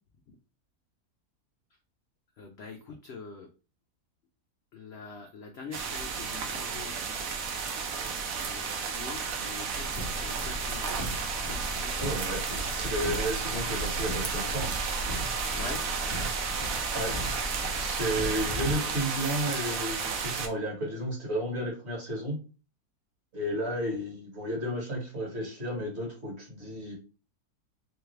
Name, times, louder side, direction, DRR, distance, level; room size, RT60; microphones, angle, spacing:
voice 1, 2.4-3.5 4.7-7.0 8.4-11.0 11.4-12.1 15.5-15.8, left 4 dB, 70° left, 3 dB, 0.6 m, -44 dB
sound 1, 5.7-20.5, right 5 dB, 65° right, 1.0 m, -32 dB
Car, 9.7-18.7, left 1 dB, 20° left, 0.6 m, -38 dB
voice 2, 12.0-12.4 12.7-14.7 16.9-17.1 17.8-22.4 23.3-26.9, equal, 45° right, 0 dB, 1.6 m, -32 dB
3.4 x 3.2 x 3.2 m, 0.33 s
omnidirectional pair, 1.7 m